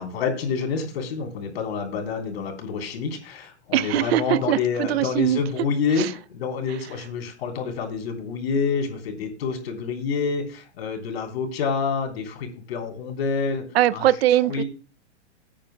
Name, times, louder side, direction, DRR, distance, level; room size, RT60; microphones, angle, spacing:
voice 1, 0.0-13.6 13.9-14.1 14.5-14.6, left 5 dB, 60° left, 3.7 m, -28 dB
voice 2, 3.7-5.4 6.0-6.1 13.7-14.6, right 13 dB, 60° right, 0.6 m, -21 dB
20.5 x 8.8 x 2.2 m
hypercardioid pair, 150°, 34 cm